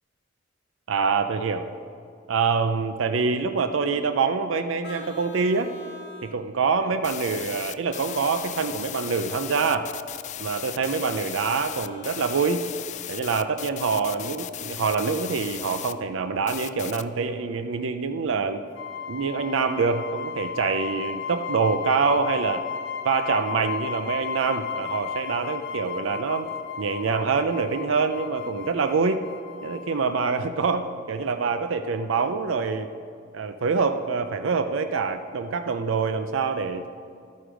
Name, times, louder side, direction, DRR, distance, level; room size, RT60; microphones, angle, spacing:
voice 1, 0.9-1.7 2.3-5.7 6.2-9.9 10.4-12.6 13.1-18.6 19.1-22.6 23.0-26.5 26.8-29.2 29.6-32.9 33.3-36.9, right 5 dB, 80° right, 9 dB, 0.5 m, -25 dB
Vehicle horn car horn honking, 4.8-6.4 7.9-9.4 11.5-12.7, left 1 dB, 60° left, 1.1 m, -46 dB
sound 1, 7.0-15.9 16.5-17.0, left 12 dB, 40° left, 0.3 m, -36 dB
sound 2, 18.8-30.2, left 7 dB, 85° left, 0.9 m, -34 dB
12.0 x 9.5 x 5.1 m, 2.3 s
head